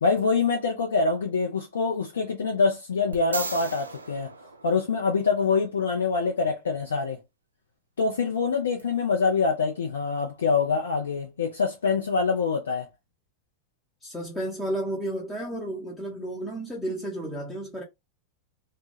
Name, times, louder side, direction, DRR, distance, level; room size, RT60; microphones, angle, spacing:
voice 1, 0.0-4.3 4.6-7.2 8.0-12.9, left 4 dB, 65° left, 0.4 m, -25 dB
sound 1, 3.1-5.4 8.8-8.9, right 3 dB, 80° right, 0.3 m, -36 dB
voice 2, 14.0-17.8, right 1 dB, 10° left, 0.7 m, -32 dB
2.2 x 2.1 x 3.0 m
figure-of-eight pair, 90°, 0 cm